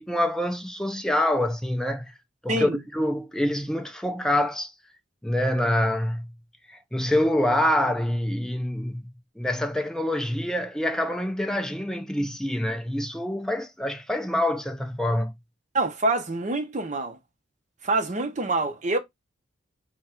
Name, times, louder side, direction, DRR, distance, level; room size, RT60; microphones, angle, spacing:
voice 1, 0.0-2.1 2.4-4.7 5.2-6.3 6.7-9.0 9.4-15.3, left 1 dB, 5° left, 0.3 m, -26 dB
voice 2, 2.5-2.8 15.7-17.2 17.8-19.0, right 2 dB, 40° right, 0.6 m, -26 dB
3.6 x 2.3 x 4.2 m
head